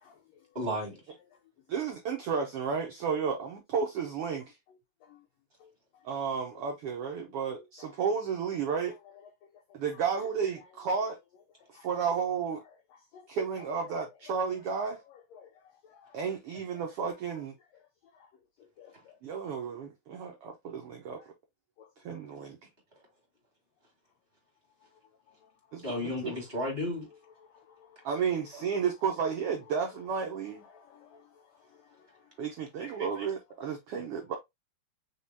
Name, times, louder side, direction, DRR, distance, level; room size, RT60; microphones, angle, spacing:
voice 1, 0.5-1.0 25.8-27.1 32.8-33.3, left 1 dB, 25° right, 1.7 m, -34 dB
voice 2, 1.7-4.5 6.0-8.9 9.7-11.2 11.8-12.6 13.3-15.0 16.1-17.5 19.2-21.3 22.0-22.6 25.7-25.8 26.2-26.3 28.0-30.6 32.4-34.4, right 6 dB, 85° right, 1.3 m, -32 dB
voice 3, 18.8-19.1 21.8-21.9 22.1-22.2 27.5-27.9 30.7-31.2, left 7 dB, 80° left, 1.5 m, -55 dB
4.8 x 3.7 x 2.7 m
omnidirectional pair, 3.6 m